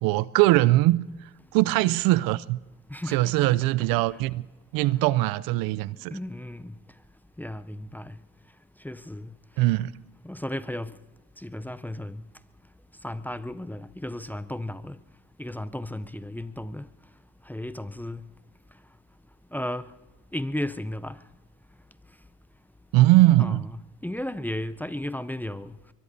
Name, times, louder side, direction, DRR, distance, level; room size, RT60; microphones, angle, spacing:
voice 1, 0.0-1.0 1.5-2.6 3.1-4.5 4.7-6.2 9.6-9.9 22.9-23.7, right 17 dB, 75° right, 0.5 m, -21 dB
voice 2, 2.9-3.3 3.6-4.0 6.1-6.8 7.4-8.2 8.8-9.3 10.2-11.0 11.4-12.2 13.0-15.0 15.4-16.9 17.5-18.2 19.5-19.9 20.3-21.2 23.4-25.8, left 1 dB, 5° left, 0.5 m, -34 dB
23.5 x 22.0 x 2.7 m
supercardioid pair, 65°, 36 cm